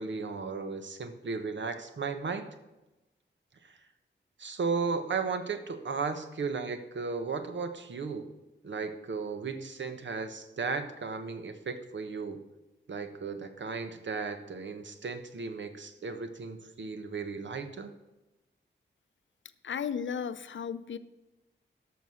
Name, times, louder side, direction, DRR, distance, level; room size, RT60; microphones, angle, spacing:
voice 1, 0.0-2.5 3.6-3.8 4.4-8.3 8.6-12.4 12.9-17.9, right 4 dB, 70° right, 8 dB, 1.1 m, -35 dB
voice 2, 19.6-21.0, left 7 dB, 70° left, 12 dB, 0.6 m, -34 dB
13.0 x 6.2 x 6.3 m, 1.0 s
wide cardioid pair, 130°, 20 cm